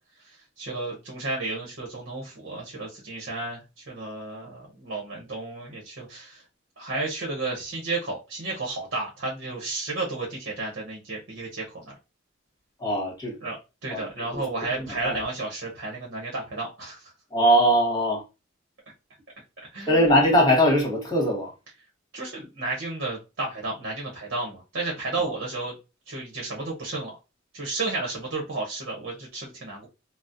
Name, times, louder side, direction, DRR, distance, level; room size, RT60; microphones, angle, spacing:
voice 1, 0.6-6.4 6.8-11.6 13.4-13.6 13.8-17.0 19.7-20.0 22.1-25.7 26.1-27.1 27.5-29.9, right 3 dB, 60° right, 0.9 m, -32 dB
voice 2, 12.8-13.3 13.9-14.5 14.7-15.2 17.3-18.2 19.9-21.5 25.2-25.3, equal, 20° left, 1.2 m, -21 dB
4.1 x 2.0 x 2.5 m
head